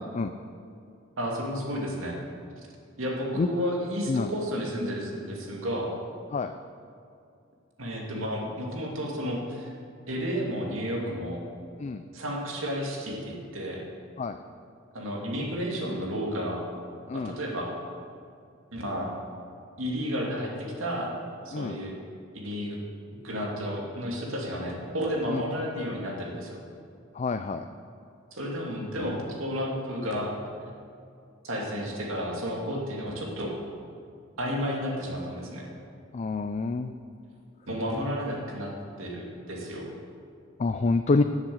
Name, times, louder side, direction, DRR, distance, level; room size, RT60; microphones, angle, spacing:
voice 1, 1.2-2.2 3.0-5.9 7.8-9.7 10.1-11.4 12.1-13.8 14.9-16.6 17.1-17.7 18.7-19.1 19.8-21.1 21.4-21.9 22.3-22.8 23.2-26.6 28.3-30.3 31.4-33.5 34.4-35.7 37.7-38.7 39.0-39.9, equal, 90° right, -1 dB, 2.4 m, -32 dB
voice 2, 27.2-27.6 36.1-36.9 40.6-41.2, left 3 dB, 35° left, 9 dB, 0.4 m, -26 dB
11.0 x 7.3 x 7.8 m, 2.5 s
head